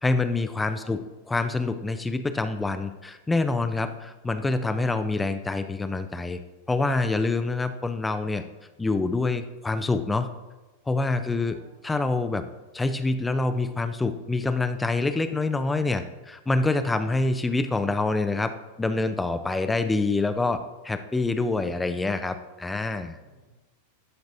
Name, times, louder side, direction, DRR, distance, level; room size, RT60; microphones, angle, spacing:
voice 1, 0.0-6.4 6.7-8.4 8.8-10.3 10.9-11.6 11.8-12.4 12.7-18.5 18.8-20.6 20.8-23.2, left 3 dB, 10° left, 9 dB, 0.4 m, -26 dB
voice 2, 0.6-0.9 11.1-11.8 23.2-23.5, right 2 dB, 70° right, -2 dB, 2.5 m, -56 dB
12.0 x 5.2 x 2.6 m, 1.2 s
figure-of-eight pair, 90°, 0 cm